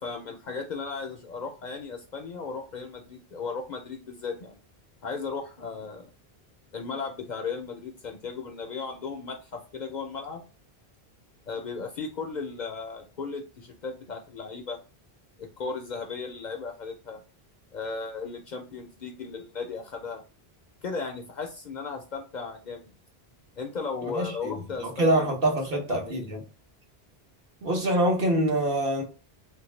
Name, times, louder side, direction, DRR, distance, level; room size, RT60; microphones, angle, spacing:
voice 1, 0.0-4.6 5.0-6.1 6.7-10.4 11.5-14.8 15.4-17.2 17.7-20.2 20.8-22.9 23.6-25.4 25.7-26.3, left 4 dB, 55° left, 0.5 m, -36 dB
voice 2, 24.0-24.5 24.8-26.4 27.6-29.0, right 1 dB, 60° right, 1.0 m, -25 dB
3.2 x 2.5 x 3.1 m
omnidirectional pair, 1.1 m